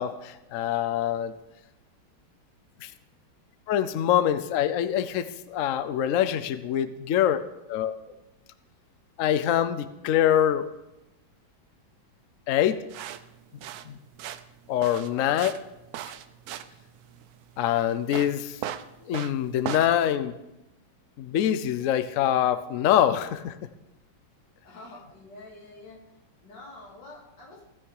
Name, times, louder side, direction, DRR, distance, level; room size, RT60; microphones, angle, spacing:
voice 1, 0.0-1.3 2.8-2.9 3.7-7.4 7.7-7.9 9.2-10.6 12.5-12.8 13.9-14.0 14.7-15.5 17.6-18.6 19.1-20.4 21.2-23.5, left 10 dB, 80° left, 12 dB, 0.7 m, -24 dB
sound 1, 12.9-19.9, right 11 dB, 80° right, 0.8 m, -38 dB
voice 2, 15.0-15.4 24.6-26.0 26.4-27.7, left 2 dB, 60° left, -2 dB, 2.9 m, -47 dB
15.5 x 6.4 x 4.8 m, 0.94 s
omnidirectional pair, 2.2 m